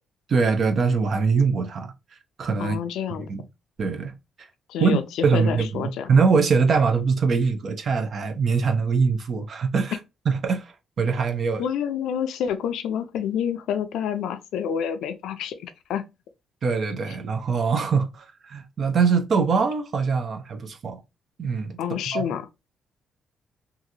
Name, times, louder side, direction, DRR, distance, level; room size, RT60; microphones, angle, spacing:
voice 1, 0.3-1.9 2.4-2.8 3.3-3.4 3.8-4.5 4.8-5.0 5.2-10.0 10.3-11.6 16.6-21.0 21.4-22.3, right 5 dB, 55° right, 0.6 m, -23 dB
voice 2, 2.6-3.3 4.7-5.0 5.3-6.1 11.6-16.0 21.8-22.4, left 8 dB, 85° left, 0.4 m, -28 dB
2.9 x 2.5 x 2.6 m
cardioid pair, 90°, 0 cm